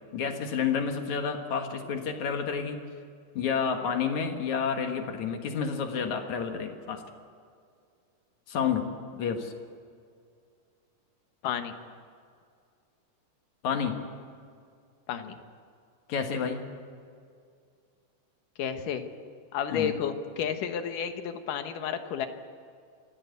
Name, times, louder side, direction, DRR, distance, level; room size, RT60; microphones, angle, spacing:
voice 1, 0.1-2.8 3.4-7.0 8.5-9.5 13.6-14.0 16.1-16.6 19.7-20.0, left 6 dB, 65° left, 5 dB, 2.8 m, -30 dB
voice 2, 11.4-11.7 15.1-15.4 18.6-19.0 19.5-22.3, left 8 dB, 90° left, 8 dB, 2.9 m, -31 dB
25.0 x 16.0 x 8.3 m, 2.2 s
omnidirectional pair, 3.6 m